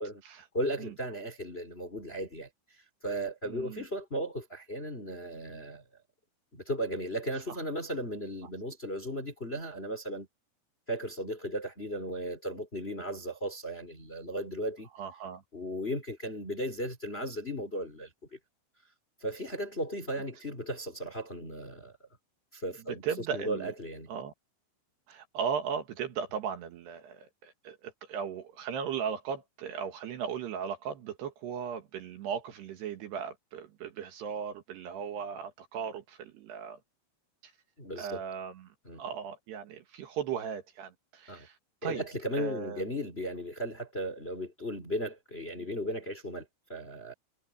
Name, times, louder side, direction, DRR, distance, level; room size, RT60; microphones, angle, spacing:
voice 1, 0.5-5.8 6.5-10.3 10.9-14.9 15.5-18.4 19.2-21.9 22.5-24.1 37.8-38.2 38.8-39.0 41.3-41.5 41.8-47.1, equal, 15° left, 2.9 m, -36 dB
voice 2, 3.5-3.8 15.0-15.4 23.0-23.7 24.1-24.3 25.1-36.8 37.4-37.5 38.0-38.7 39.0-41.5 41.8-42.0 42.3-42.8, right 7 dB, 65° right, 3.5 m, -37 dB
omnidirectional pair, 5.6 m